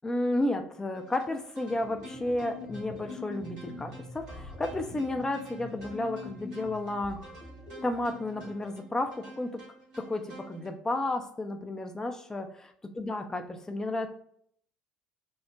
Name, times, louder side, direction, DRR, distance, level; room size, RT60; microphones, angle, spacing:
voice 1, 0.0-7.2 7.8-9.6 10.0-14.1, left 2 dB, 15° left, 5 dB, 0.4 m, -32 dB
sound 1, 0.9-10.7, right 1 dB, 80° right, 1.5 m, -51 dB
sound 2, 1.6-8.7, left 3 dB, 30° left, 0.9 m, -44 dB
4.4 x 2.1 x 3.3 m, 0.65 s
figure-of-eight pair, 60°, 4 cm